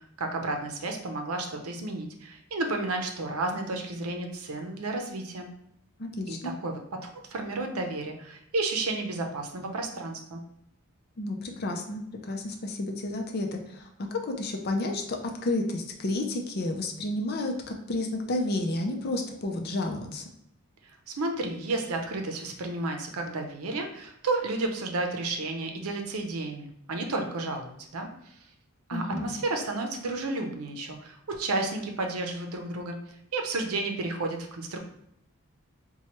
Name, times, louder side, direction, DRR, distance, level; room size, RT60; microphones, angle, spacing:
voice 1, 0.0-5.5 6.3-10.4 21.1-28.1 28.9-33.0 33.3-34.8, right 2 dB, 90° right, 3 dB, 0.6 m, -32 dB
voice 2, 6.0-6.5 11.2-20.2 28.9-29.3, left 2 dB, 45° left, 2 dB, 0.5 m, -31 dB
4.4 x 2.2 x 3.0 m, 0.76 s
head